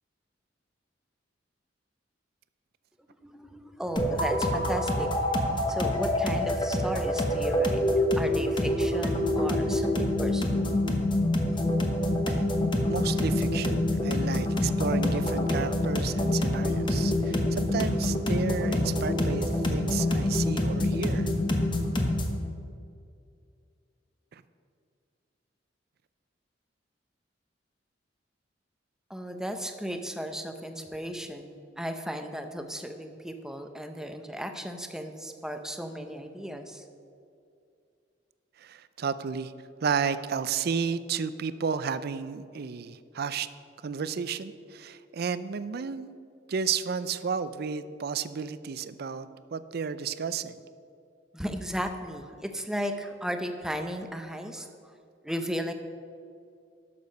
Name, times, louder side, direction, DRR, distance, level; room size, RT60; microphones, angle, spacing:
voice 1, 3.2-5.1 5.4-7.8 8.2-10.8 11.1-11.2 29.1-36.8 51.3-54.7 55.2-55.7, equal, 5° right, 6 dB, 0.7 m, -35 dB
sound 1, 4.0-22.4, left 1 dB, 25° left, 1.0 m, -26 dB
voice 2, 12.9-21.3 24.3-24.4 38.6-39.5 39.8-43.5 43.8-46.1 46.5-50.6, right 6 dB, 55° right, 14 dB, 0.4 m, -32 dB
12.0 x 6.8 x 5.2 m, 2.4 s
head